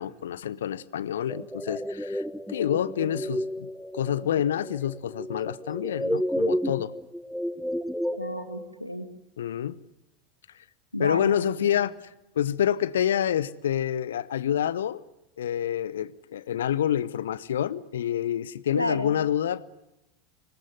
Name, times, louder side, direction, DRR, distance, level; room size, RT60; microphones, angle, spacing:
voice 1, 0.0-3.7 3.9-6.9 9.4-9.8 11.0-11.9 12.3-15.0 15.4-19.6, left 10 dB, 70° left, 19 dB, 0.9 m, -27 dB
sound 1, 1.3-8.7, equal, ahead, 0.9 m, -32 dB
voice 2, 8.1-9.1 10.9-11.8 18.7-19.1, left 1 dB, 90° left, 9 dB, 2.0 m, -31 dB
25.5 x 20.0 x 9.4 m, 0.94 s
figure-of-eight pair, 80°, 0 cm